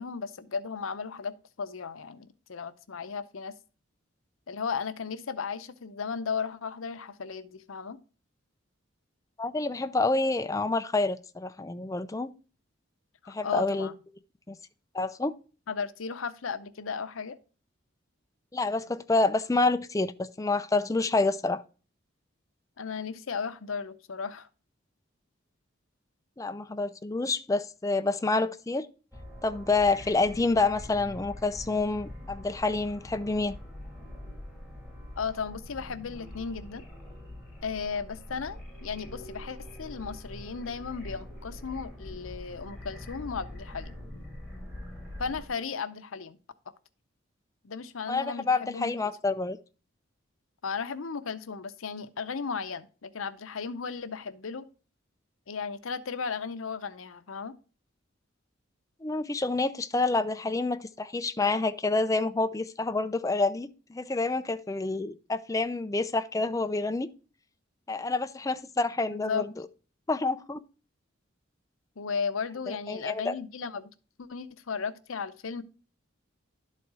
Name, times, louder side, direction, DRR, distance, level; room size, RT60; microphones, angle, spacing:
voice 1, 0.0-3.5 4.5-8.0 13.2-13.9 15.7-17.4 22.8-24.5 35.2-36.8 37.6-43.9 45.2-46.4 47.6-48.9 50.6-54.7 55.5-57.5 69.1-69.5 72.0-73.9 74.2-75.6, left 5 dB, 85° left, 0.7 m, -35 dB
voice 2, 9.4-12.3 13.3-13.9 14.5-14.6 14.9-15.4 18.5-21.6 26.4-28.9 29.4-33.5 48.1-49.6 59.0-67.1 67.9-69.5 70.1-70.6 72.7-73.4, left 3 dB, 15° left, 0.4 m, -28 dB
sound 1, 29.1-45.5, left 1 dB, 5° right, 2.4 m, -44 dB
11.5 x 4.2 x 4.7 m
head